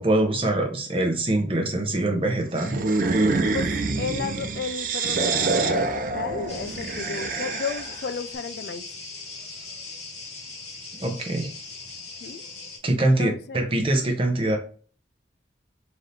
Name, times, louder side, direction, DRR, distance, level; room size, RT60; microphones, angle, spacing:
voice 1, 0.0-2.8 11.0-11.5 12.8-14.6, right 1 dB, 30° right, 0.8 m, -23 dB
sound 1, 2.6-8.0, right 3 dB, 50° right, 0.4 m, -26 dB
voice 2, 3.5-8.9 12.2-12.4 13.0-13.7, left 5 dB, 60° left, 0.3 m, -33 dB
sound 2, 6.5-12.8, left 3 dB, 35° left, 1.9 m, -39 dB
4.0 x 2.7 x 3.3 m
head